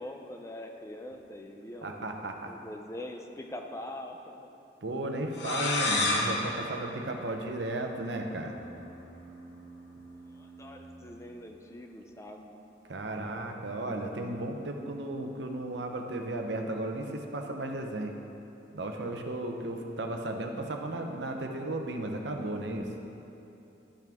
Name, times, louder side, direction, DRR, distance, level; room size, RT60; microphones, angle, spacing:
voice 1, 0.0-2.1 2.5-4.5 10.3-12.6, left 1 dB, 15° left, 4 dB, 0.4 m, -43 dB
voice 2, 1.8-2.5 4.8-8.5 12.9-18.1 18.7-22.9, right 1 dB, 75° right, 3 dB, 0.8 m, -34 dB
sound 1, 5.3-7.9, left 2 dB, 75° left, 1.0 m, -31 dB
sound 2, 8.4-12.1, right 2 dB, 50° left, 1.5 m, -51 dB
12.5 x 6.0 x 3.5 m, 2.9 s
head